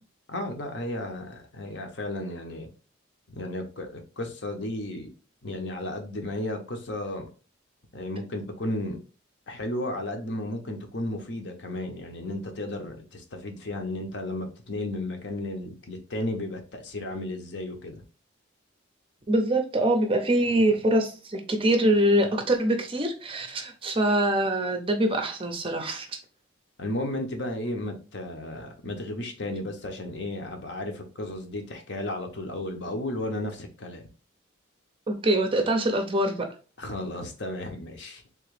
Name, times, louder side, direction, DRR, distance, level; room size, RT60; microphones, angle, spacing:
voice 1, 0.3-2.7 3.3-5.1 5.4-7.3 7.9-9.0 9.5-18.0 26.8-34.0 36.8-38.2, left 1 dB, 60° left, 0.8 m, -34 dB
voice 2, 19.3-26.1 35.1-36.5, right 1 dB, 25° right, 0.5 m, -24 dB
3.5 x 2.9 x 3.2 m
head